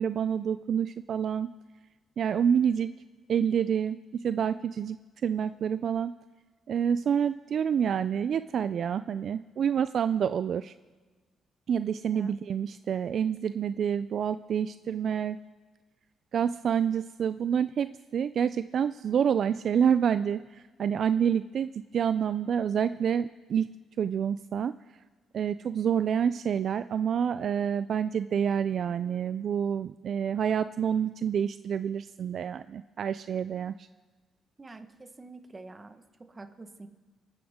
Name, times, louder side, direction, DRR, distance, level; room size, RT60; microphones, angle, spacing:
voice 1, 0.0-1.5 2.2-2.9 3.3-6.1 6.7-10.7 11.7-15.4 16.3-24.7 25.3-33.9, right 8 dB, 60° right, 13 dB, 0.3 m, -28 dB
voice 2, 34.6-36.0 36.3-36.9, right 3 dB, 25° right, 7 dB, 1.3 m, -46 dB
28.5 x 9.9 x 3.7 m, 1.3 s
cardioid pair, 90°, 0 cm